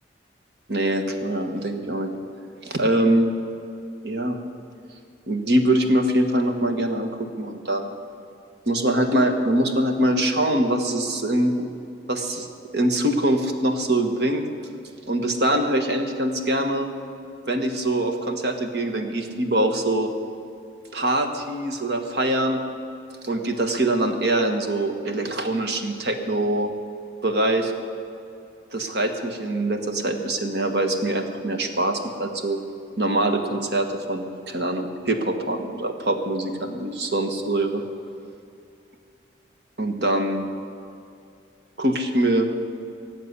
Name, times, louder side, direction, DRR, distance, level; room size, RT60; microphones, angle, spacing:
voice 1, 0.7-2.1 2.6-3.3 4.0-4.4 5.3-7.9 8.7-11.7 12.1-12.5 12.7-14.5 15.1-16.9 17.5-20.1 20.9-22.6 23.2-26.7 27.2-27.7 28.7-32.6 33.0-37.8 39.8-40.4 41.8-42.6, right 1 dB, 65° right, 6 dB, 1.5 m, -23 dB
18.0 x 7.6 x 9.6 m, 2.6 s
head